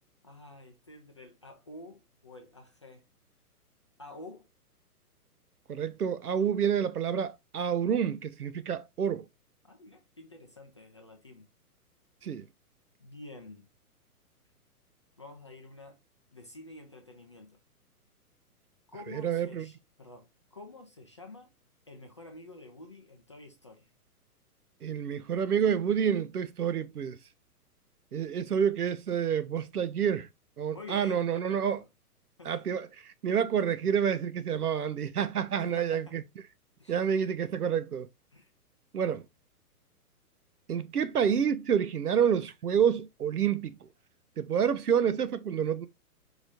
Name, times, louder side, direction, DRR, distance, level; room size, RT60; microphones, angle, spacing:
voice 1, 0.2-3.0 4.0-4.5 6.4-6.5 9.6-11.5 13.0-13.7 15.2-16.0 16.3-17.6 18.9-21.5 21.9-23.9 30.7-31.9 32.4-32.7 35.5-36.1 36.8-37.0 38.3-38.5, left 2 dB, 20° left, 0.4 m, -49 dB
voice 2, 5.7-9.2 12.2-12.4 19.1-19.7 24.8-27.2 28.1-30.3 30.6-31.8 32.4-36.2 36.9-38.1 38.9-39.2 40.7-43.8 44.4-45.9, right 8 dB, 75° right, 0.8 m, -28 dB
4.9 x 4.0 x 2.5 m
figure-of-eight pair, 120°, 46 cm